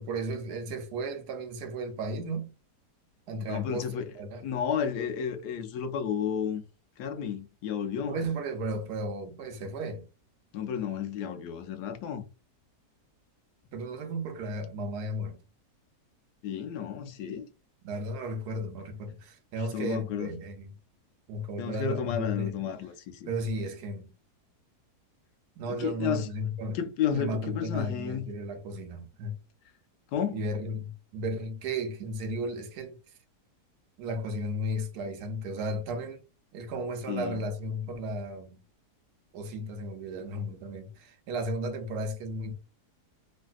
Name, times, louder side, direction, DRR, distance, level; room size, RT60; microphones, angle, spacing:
voice 1, 0.0-2.5 3.3-4.4 8.1-10.1 13.7-15.4 17.8-20.7 21.3-22.6 23.3-24.1 25.6-26.8 27.1-29.4 30.3-33.0 34.0-36.2 36.5-38.6 39.3-42.5, right 1 dB, 80° right, 1.2 m, -34 dB
voice 2, 3.5-4.1 4.4-6.6 7.0-8.2 10.5-12.2 16.4-17.5 19.6-20.3 21.6-23.3 25.8-26.3 26.7-28.3 30.1-30.5 37.1-37.4, left 8 dB, 85° left, 1.2 m, -32 dB
3.2 x 2.5 x 2.3 m
omnidirectional pair, 1.7 m